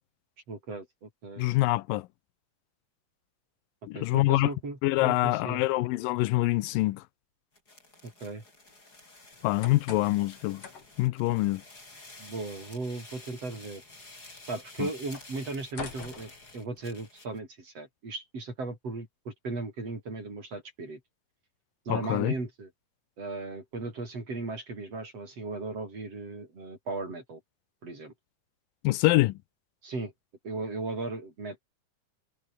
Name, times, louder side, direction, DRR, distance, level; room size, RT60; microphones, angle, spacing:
voice 1, 0.5-1.5 3.9-5.6 8.0-8.4 12.2-13.8 14.5-21.0 21.9-22.7 23.2-27.4 27.8-28.1 29.8-30.1 30.4-31.6, right 3 dB, 45° right, 8.2 m, -37 dB
voice 2, 1.4-2.1 3.9-4.5 4.8-7.0 9.4-10.6 11.0-11.6 14.8-14.9 21.9-22.3 28.8-29.4, left 18 dB, 85° left, 2.4 m, -25 dB
sound 1, 7.5-17.4, left 2 dB, 25° left, 6.9 m, -51 dB
sound 2, 9.3-17.1, left 6 dB, 45° left, 3.8 m, -48 dB
omnidirectional pair, 3.9 m